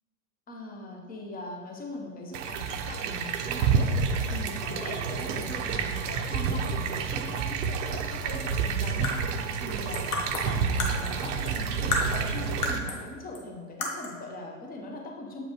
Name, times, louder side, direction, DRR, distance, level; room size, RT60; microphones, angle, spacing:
voice 1, 0.5-3.9 4.3-9.2 9.6-15.5, left 2 dB, 20° left, 1 dB, 1.0 m, -40 dB
water flowing from a pipe into the sewer, 2.3-12.8, right 6 dB, 55° right, 0.7 m, -29 dB
sound 1, 8.8-11.6 11.9-13.1 13.3-13.4 13.8-14.2, left 2 dB, 75° left, 1.2 m, -32 dB
7.6 x 5.1 x 3.1 m, 1.5 s
hypercardioid pair, 100°, 44 cm